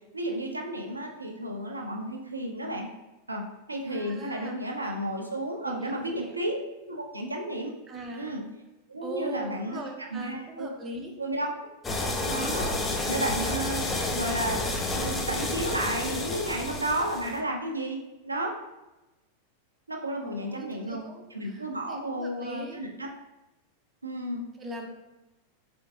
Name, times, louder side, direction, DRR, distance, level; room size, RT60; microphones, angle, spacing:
voice 1, 0.1-2.9 3.3-6.6 6.9-7.7 8.2-8.4 8.9-9.8 10.1-10.7 11.2-11.5 12.3-12.7 13.1-18.6 19.9-21.0 21.3-23.1 24.0-24.4, right 1 dB, 80° right, 2 dB, 0.6 m, -32 dB
voice 2, 3.9-4.9 5.6-6.3 7.9-8.4 9.0-11.2 20.1-22.8 24.6-24.9, right 2 dB, 20° right, 2 dB, 0.7 m, -40 dB
sound 1, 11.8-17.4, left 2 dB, 15° left, 0.6 m, -30 dB
4.5 x 3.4 x 2.8 m, 1.0 s
figure-of-eight pair, 90°, 0 cm